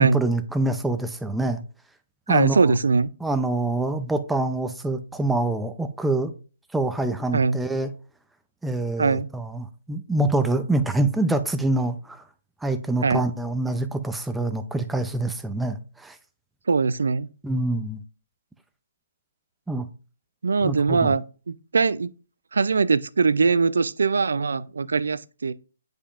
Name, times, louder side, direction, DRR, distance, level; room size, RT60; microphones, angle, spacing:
voice 1, 0.0-1.6 2.3-2.6 3.2-6.3 6.7-7.9 8.6-12.2 12.6-16.2 17.4-18.0 19.7-19.8 20.6-21.1, right 2 dB, 5° right, 0.5 m, -25 dB
voice 2, 2.3-3.1 7.3-7.6 9.0-9.3 13.0-13.3 16.7-17.3 20.4-22.1 22.5-25.5, right 4 dB, 75° right, 0.4 m, -21 dB
8.2 x 5.1 x 2.5 m
hypercardioid pair, 145°, 0 cm